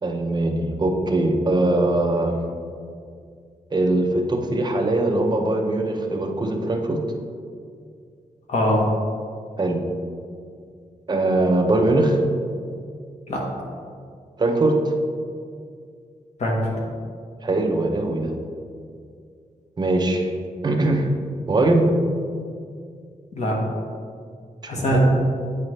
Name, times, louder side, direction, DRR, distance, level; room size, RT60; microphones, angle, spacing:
voice 1, 0.0-2.4 3.7-7.0 9.6-9.8 11.1-12.2 14.4-14.7 17.4-18.3 19.8-20.3 20.6-21.1 21.5-21.9 24.6-25.0, right 2 dB, 30° right, 3 dB, 0.6 m, -21 dB
voice 2, 8.5-8.9 13.3-13.4 16.4-16.7 23.3-23.6 24.7-25.0, equal, 55° left, -2 dB, 1.3 m, -22 dB
9.1 x 4.9 x 3.2 m, 2.3 s
wide cardioid pair, 175°, 14 cm